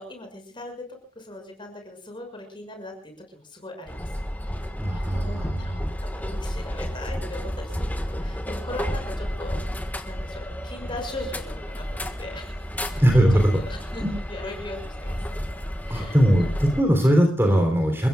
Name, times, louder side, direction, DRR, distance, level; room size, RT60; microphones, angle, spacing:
voice 1, 0.0-4.2 4.5-4.6 4.9-5.8 6.1-9.6 10.1-13.0 13.3-14.0 14.3-15.2 15.8-16.2 16.5-16.6, left 2 dB, 25° left, 4 dB, 6.2 m, -39 dB
sound 1, 3.9-16.8, equal, 10° left, 1.5 m, -31 dB
voice 2, 4.8-5.9 13.0-13.5 14.0-14.1 15.9-18.1, equal, 10° right, 3 dB, 3.4 m, -20 dB
30.0 x 16.0 x 2.4 m, 0.37 s
head